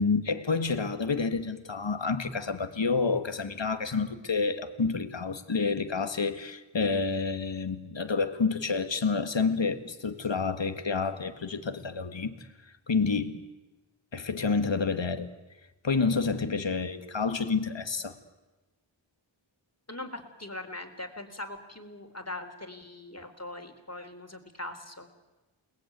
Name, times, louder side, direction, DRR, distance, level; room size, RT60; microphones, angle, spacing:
voice 1, 0.0-13.4 14.1-15.3 15.8-18.1, left 4 dB, 65° left, 1.8 m, -29 dB
voice 2, 19.9-25.1, left 1 dB, 30° left, 3.8 m, -41 dB
29.0 x 20.0 x 9.4 m
wide cardioid pair, 45°, 49 cm